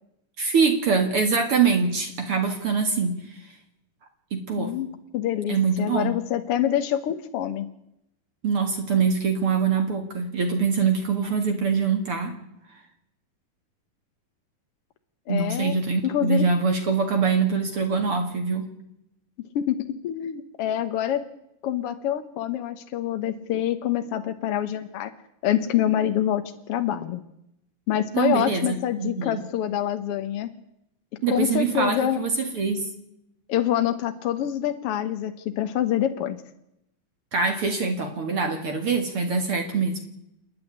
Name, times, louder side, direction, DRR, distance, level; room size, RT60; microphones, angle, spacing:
voice 1, 0.4-3.4 4.3-4.8 5.5-6.1 8.4-12.3 15.3-18.7 28.1-29.4 31.2-32.9 37.3-40.0, right 5 dB, 45° right, 5 dB, 2.4 m, -24 dB
voice 2, 4.6-4.9 5.1-7.7 15.3-15.8 16.0-16.5 19.5-19.8 20.0-21.2 21.6-25.1 25.4-26.4 26.7-27.2 27.9-30.5 31.3-32.2 33.5-36.4, left 11 dB, 75° left, 8 dB, 1.4 m, -26 dB
28.5 x 9.8 x 9.9 m, 0.82 s
omnidirectional pair, 3.9 m